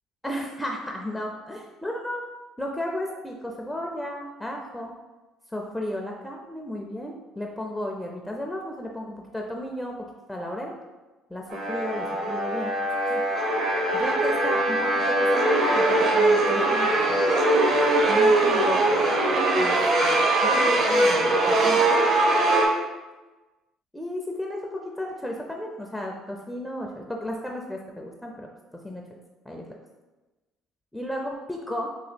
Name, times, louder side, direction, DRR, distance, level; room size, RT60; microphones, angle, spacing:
voice 1, 0.2-2.2 2.6-4.9 5.5-10.0 10.3-10.7 11.3-12.7 13.0-13.2 13.9-17.2 18.1-18.8 19.6-20.6 20.9-21.9 23.9-28.5 28.8-29.0 29.5-29.8 30.9-31.9, left 1 dB, 5° left, 0 dB, 0.4 m, -34 dB
sound 1, 11.5-22.7, right 2 dB, 50° right, 0.8 m, -21 dB
2.9 x 2.7 x 4.2 m, 1.2 s
supercardioid pair, 90°, 0 cm